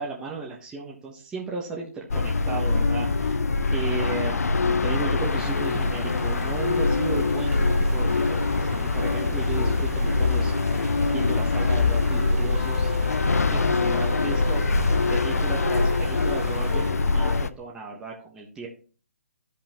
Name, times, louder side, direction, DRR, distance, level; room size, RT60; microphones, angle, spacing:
voice 1, 0.0-3.4 3.7-18.7, right 3 dB, 10° right, -3 dB, 1.3 m, -35 dB
sound 1, 2.1-17.5, left 3 dB, 75° left, 0.6 m, -23 dB
sound 2, 5.2-16.9, right 4 dB, 55° right, 1.9 m, -38 dB
13.0 x 5.5 x 3.0 m, 0.39 s
figure-of-eight pair, 140°, 8 cm